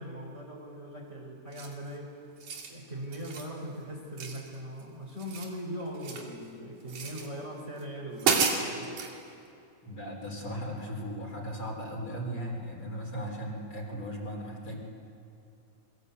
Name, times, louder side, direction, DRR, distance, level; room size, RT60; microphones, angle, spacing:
voice 1, 0.0-2.1 2.6-8.9, equal, 20° right, -2 dB, 4.4 m, -40 dB
sound 1, 1.5-1.9 2.3-2.7 3.1-3.5 4.2-4.8 5.1-6.3 6.9-7.3 7.8-7.9 8.2-9.1, right 5 dB, 90° right, 4.1 m, -31 dB
voice 2, 9.8-14.8, equal, 45° left, -1 dB, 4.8 m, -37 dB
27.5 x 22.5 x 8.3 m, 2.6 s
omnidirectional pair, 3.4 m